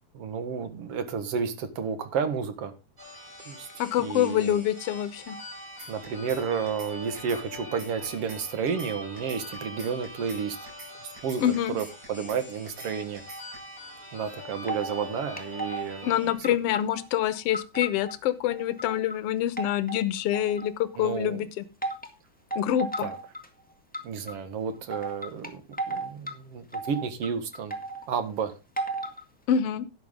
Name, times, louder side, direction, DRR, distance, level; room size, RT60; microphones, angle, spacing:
voice 1, 0.2-2.7 3.5-3.7 4.0-4.6 5.9-10.6 11.2-13.2 14.1-16.1 21.0-21.4 23.0-23.2 24.0-25.6 25.9-27.7 28.1-28.5, right 6 dB, 55° right, 2.3 m, -31 dB
sound 1, 3.0-16.3, left 1 dB, 20° right, 5.8 m, -43 dB
voice 2, 3.8-5.4 11.4-11.8 16.0-21.7 22.6-23.1 29.5-29.9, left 11 dB, 65° left, 1.7 m, -26 dB
sound 2, 5.8-6.4 6.7-6.9 7.2-8.4 8.7-8.9 9.2-10.4 10.7-10.9 11.2-12.4 12.7-12.9 13.2-13.6, right 2 dB, 75° right, 7.0 m, -44 dB
sound 3, 14.7-15.1 15.4-16.1 16.4-18.1 18.5-19.2 19.6-20.8 21.8-22.1 22.5-23.5 23.9-24.3 24.9-26.3 26.7-28.1 28.8-29.2, right 2 dB, 5° left, 1.0 m, -34 dB
11.5 x 9.8 x 3.7 m
omnidirectional pair, 3.4 m